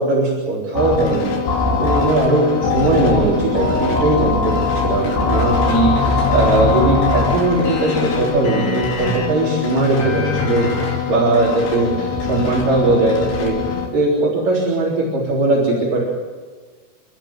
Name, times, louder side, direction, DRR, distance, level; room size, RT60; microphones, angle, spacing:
voice 1, 0.0-4.6 4.8-13.6 13.9-16.0, right 2 dB, 50° right, -3 dB, 5.3 m, -19 dB
sound 1, 0.7-13.9, left 4 dB, 70° left, 5.8 m, -21 dB
29.5 x 13.5 x 9.0 m, 1.4 s
omnidirectional pair, 4.9 m